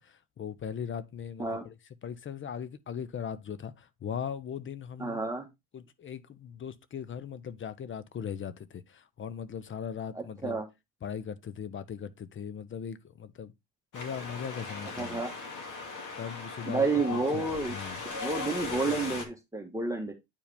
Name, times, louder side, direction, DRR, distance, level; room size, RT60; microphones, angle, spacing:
voice 1, 0.0-1.7 2.0-5.2 5.7-10.6 11.0-13.5 13.9-15.2 16.2-16.9 17.1-18.0, left 8 dB, 30° left, 0.7 m, -39 dB
voice 2, 5.0-5.5 10.1-10.7 14.9-15.3 16.7-17.8 18.1-20.1, right 3 dB, 10° right, 1.4 m, -30 dB
Wind, 13.9-19.3, left 4 dB, 50° left, 2.3 m, -38 dB
8.8 x 4.7 x 3.4 m
hypercardioid pair, 75°, 38 cm